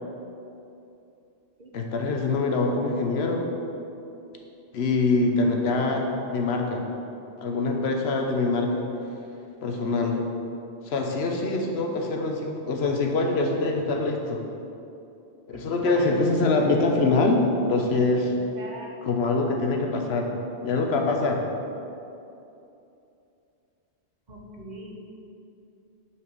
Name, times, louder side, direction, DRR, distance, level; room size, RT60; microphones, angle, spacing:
voice 1, 1.7-3.5 4.7-6.8 7.4-8.9 9.6-10.2 10.8-14.4 15.5-18.3 19.0-20.3 20.6-21.4, left 3 dB, 75° left, 2 dB, 1.1 m, -24 dB
voice 2, 15.5-16.6 18.2-18.9 24.3-24.9, right 1 dB, 45° right, -1 dB, 1.1 m, -39 dB
5.8 x 4.8 x 6.1 m, 2.8 s
omnidirectional pair, 1.1 m